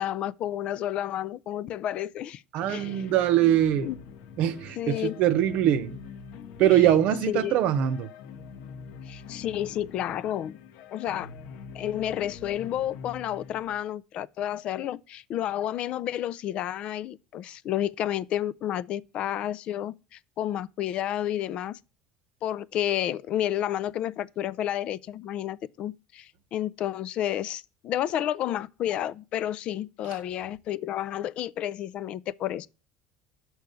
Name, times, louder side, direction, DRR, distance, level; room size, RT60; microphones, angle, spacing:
voice 1, 0.0-2.4 2.7-3.1 3.8-4.0 4.8-5.2 6.6-6.8 7.3-7.6 9.1-10.6 10.9-11.3 11.7-21.8 22.4-32.7, left 11 dB, 50° left, 0.4 m, -31 dB
voice 2, 2.5-3.9 4.4-6.0 6.6-8.1, right 11 dB, 60° right, 0.8 m, -22 dB
sound 1, 2.6-13.8, left 6 dB, 70° left, 0.9 m, -44 dB
6.4 x 4.7 x 6.7 m
cardioid pair, 130°, 2 cm